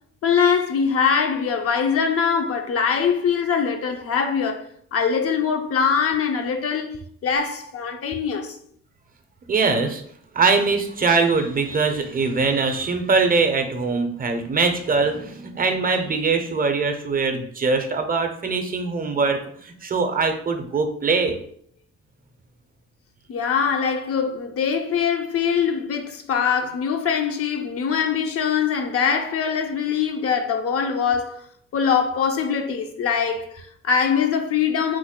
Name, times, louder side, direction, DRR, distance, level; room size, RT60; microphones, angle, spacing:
voice 1, 0.2-8.6 23.3-31.4 31.7-35.0, left 6 dB, 50° left, 0.4 m, -23 dB
voice 2, 9.5-10.0 10.3-21.4, right 4 dB, 30° right, 0.5 m, -22 dB
3.1 x 2.1 x 3.6 m
cardioid pair, 90°, 30 cm